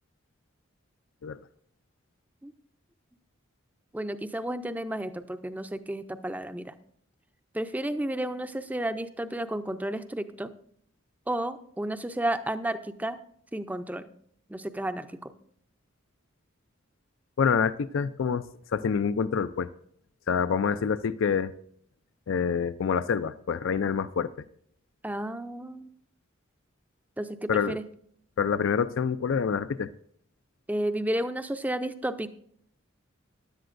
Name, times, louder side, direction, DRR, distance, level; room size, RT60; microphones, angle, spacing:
voice 1, 3.9-6.7 7.5-10.5 11.3-13.2 13.5-14.1 14.5-15.3 25.0-25.9 27.2-27.8 30.7-32.3, right 1 dB, 10° right, 10 dB, 0.5 m, -32 dB
voice 2, 17.4-18.4 18.7-19.7 20.3-21.5 22.3-24.3 27.5-27.8 28.4-29.9, left 6 dB, 70° left, 14 dB, 0.4 m, -26 dB
15.5 x 11.0 x 2.5 m, 0.66 s
head